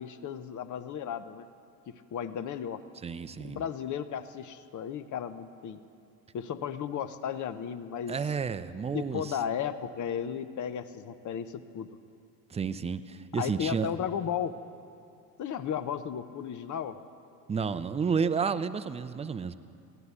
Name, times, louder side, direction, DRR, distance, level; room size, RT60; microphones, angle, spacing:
voice 1, 0.0-1.5 1.9-2.8 3.4-5.8 6.3-8.2 8.9-11.9 13.3-14.5 15.4-17.0, left 8 dB, 40° left, 12 dB, 0.8 m, -34 dB
voice 2, 3.0-3.6 8.1-9.4 12.5-13.9 17.5-19.6, right 6 dB, 15° right, 12 dB, 0.4 m, -31 dB
15.0 x 10.0 x 8.1 m, 2.4 s
hypercardioid pair, 65°, 46 cm